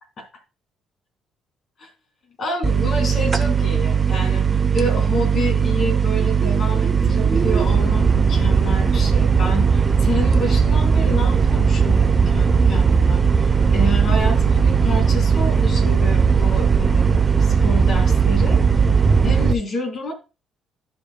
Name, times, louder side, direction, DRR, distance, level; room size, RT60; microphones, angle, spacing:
voice 1, 2.4-4.5 4.7-18.6 19.2-20.1, equal, 55° left, 3 dB, 3.1 m, -28 dB
sound 1, 2.6-19.5, right 5 dB, 35° right, 0.7 m, -17 dB
15.0 x 5.3 x 2.2 m, 0.30 s
hypercardioid pair, 55°, 0 cm